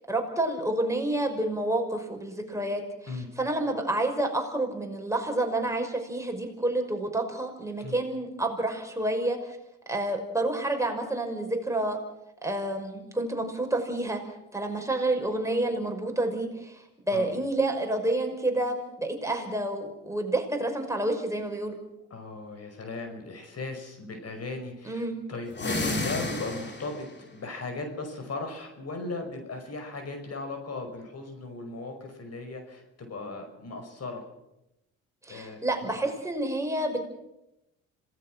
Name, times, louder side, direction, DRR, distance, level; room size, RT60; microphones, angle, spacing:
voice 1, 0.1-2.8 3.4-9.6 9.9-12.0 12.4-21.8 24.8-25.1 35.2-37.0, right 1 dB, 10° right, 3 dB, 5.7 m, -29 dB
voice 2, 22.1-25.0 25.3-34.3 35.3-35.9, left 3 dB, 50° left, 6 dB, 5.5 m, -37 dB
sound 1, 25.5-27.1, left 2 dB, 35° left, 4.1 m, -31 dB
26.5 x 18.5 x 6.3 m, 0.90 s
supercardioid pair, 60°, 33 cm